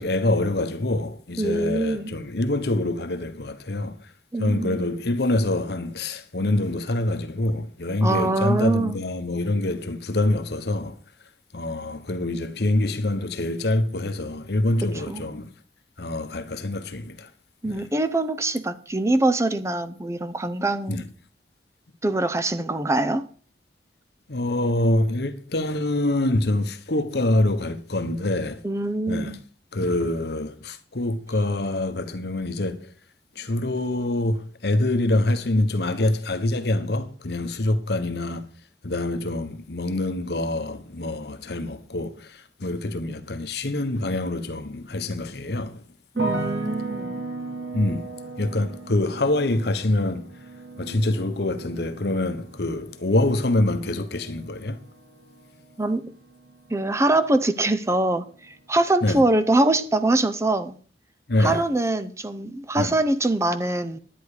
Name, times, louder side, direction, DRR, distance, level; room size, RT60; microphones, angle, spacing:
voice 1, 0.0-4.1 4.4-11.0 11.5-15.5 16.0-17.3 17.6-17.9 20.9-21.1 24.3-28.6 29.1-29.4 29.7-32.9 33.3-38.5 38.8-45.8 47.7-48.1 48.4-50.2 50.8-54.8 59.0-59.2 61.3-61.6 62.8-62.9, left 1 dB, 60° left, 1.1 m, -25 dB
voice 2, 1.4-2.1 4.3-4.8 8.0-9.0 15.1-15.3 17.6-21.1 22.0-23.3 28.6-29.4 46.2-47.2 55.8-56.1 56.7-60.8 61.4-64.0, right 2 dB, 15° right, 0.7 m, -23 dB
sound 1, 46.2-57.2 57.5-58.2, right 3 dB, 80° right, 2.4 m, -37 dB
10.5 x 9.9 x 5.0 m
head